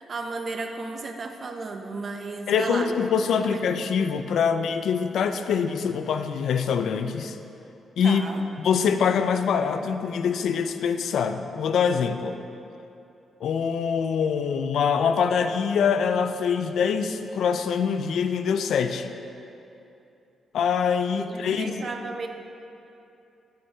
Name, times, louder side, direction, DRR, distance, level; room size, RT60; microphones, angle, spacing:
voice 1, 0.0-2.9 3.4-3.6 8.0-8.4 21.2-22.3, right 3 dB, 40° right, 4 dB, 0.6 m, -34 dB
voice 2, 2.5-7.4 8.0-8.2 8.6-12.4 13.4-19.1 20.5-21.9, left 6 dB, 70° left, 9 dB, 0.4 m, -24 dB
9.3 x 8.7 x 2.8 m, 2.8 s
wide cardioid pair, 150°, 0 cm